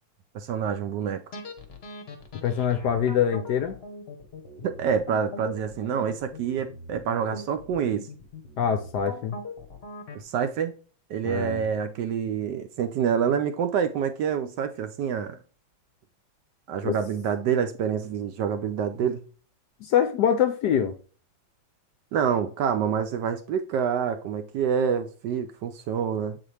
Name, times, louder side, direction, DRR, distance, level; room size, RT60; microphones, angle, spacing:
voice 1, 0.3-1.2 4.6-8.1 10.1-10.8 11.1-15.4 16.7-19.2 22.1-26.4, right 7 dB, 75° right, 1.0 m, -27 dB
sound 1, 1.3-10.2, left 2 dB, 45° left, 0.9 m, -41 dB
voice 2, 2.4-3.8 8.6-9.4 11.2-11.6 16.8-16.9 19.8-20.9, left 8 dB, 70° left, 1.0 m, -24 dB
7.6 x 4.1 x 3.2 m
omnidirectional pair, 2.2 m